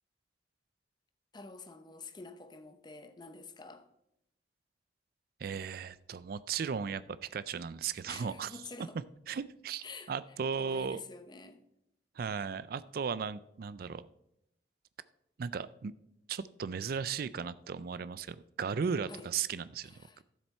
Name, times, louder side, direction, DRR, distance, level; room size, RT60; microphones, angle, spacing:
voice 1, 1.3-3.9 8.1-9.0 9.8-10.1 10.5-11.6 19.1-19.3 19.8-20.2, left 3 dB, 25° left, 9 dB, 0.7 m, -48 dB
voice 2, 5.4-8.5 9.3-11.0 12.2-14.0 15.4-15.9 16.3-20.0, right 6 dB, 55° right, 16 dB, 0.4 m, -36 dB
12.5 x 7.3 x 4.3 m, 0.82 s
head